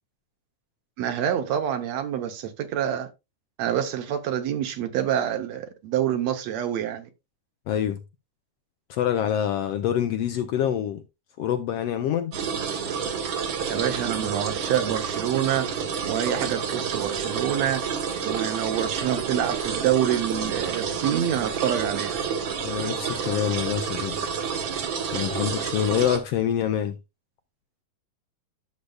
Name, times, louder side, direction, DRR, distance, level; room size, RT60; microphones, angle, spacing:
voice 1, 1.0-3.1 3.6-7.1 13.7-15.7 16.1-17.8 18.2-22.2, right 10 dB, 70° right, 2.0 m, -26 dB
voice 2, 7.7-8.0 8.9-11.0 11.4-12.3 22.6-24.3 25.1-27.0, left 10 dB, 70° left, 1.6 m, -26 dB
sound 1, 12.3-26.2, right 6 dB, 55° right, 1.5 m, -29 dB
12.0 x 6.6 x 2.3 m
omnidirectional pair, 3.3 m